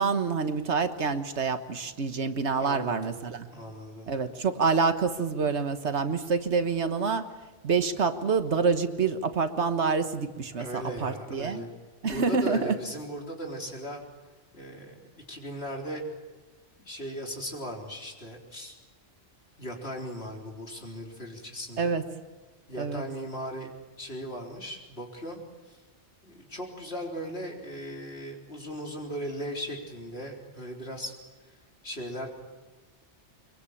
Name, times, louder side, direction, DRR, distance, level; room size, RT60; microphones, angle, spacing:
voice 1, 0.0-3.5 4.1-7.3 7.6-11.6 12.0-12.7 21.8-22.0 22.8-23.0, right 5 dB, 70° right, 9 dB, 1.6 m, -27 dB
voice 2, 2.5-3.1 3.5-4.2 10.5-11.7 12.1-14.0 14.5-16.1 16.8-18.7 19.6-21.9 22.7-23.7 24.0-25.4 25.7-25.8 26.2-31.1 31.8-32.3, equal, 60° left, 1 dB, 4.2 m, -37 dB
24.0 x 22.5 x 8.6 m, 1.2 s
omnidirectional pair, 1.2 m